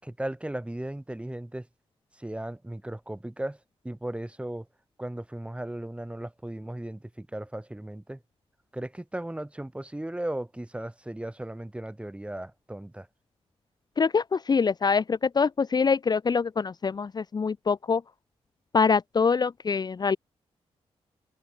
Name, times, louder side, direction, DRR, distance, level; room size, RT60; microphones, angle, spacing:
voice 1, 0.0-1.7 2.2-3.6 3.8-4.7 5.0-8.2 8.7-13.1, right 1 dB, 10° right, 5.0 m, -36 dB
voice 2, 14.0-18.0 18.7-20.2, left 5 dB, 40° left, 0.7 m, -24 dB
open air
cardioid pair, 85°, 11 cm